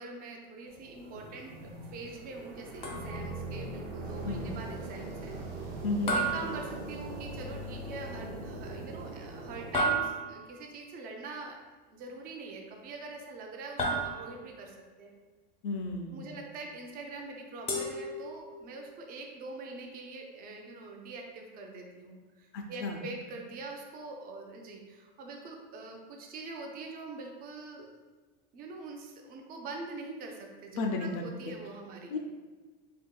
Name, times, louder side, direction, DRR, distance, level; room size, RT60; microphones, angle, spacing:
voice 1, 0.0-5.3 5.6-5.8 6.0-11.6 11.9-15.1 16.1-27.9 28.5-32.1, right 3 dB, 30° right, 1 dB, 0.4 m, -44 dB
sound 1, 0.7-9.9, right 2 dB, 90° right, 0.7 m, -41 dB
sound 2, 2.8-3.4 6.1-7.3 9.7-10.6 13.8-14.6 17.7-18.7, right 2 dB, 20° left, 0.5 m, -33 dB
voice 2, 5.8-6.2 15.6-16.3 22.5-23.0 30.7-31.1 31.5-31.6 32.1-32.2, left 3 dB, 70° left, 3 dB, 0.5 m, -33 dB
3.4 x 2.8 x 2.2 m, 1.4 s
supercardioid pair, 140°, 29 cm